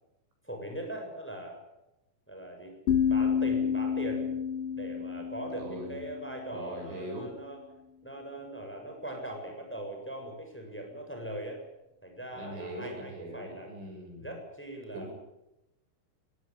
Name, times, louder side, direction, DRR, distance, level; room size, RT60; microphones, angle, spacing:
voice 1, 0.4-1.6 2.3-2.8 3.1-4.3 4.7-7.6 8.0-11.6 12.0-13.7 14.2-15.1, right 1 dB, ahead, 2 dB, 7.0 m, -40 dB
sound 1, 2.9-6.8, left 7 dB, 60° left, 2.5 m, -30 dB
voice 2, 5.5-6.0 6.5-7.3 12.3-14.3 14.9-15.1, right 1 dB, 80° right, 4 dB, 9.1 m, -41 dB
22.5 x 19.0 x 9.8 m, 0.91 s
omnidirectional pair, 5.4 m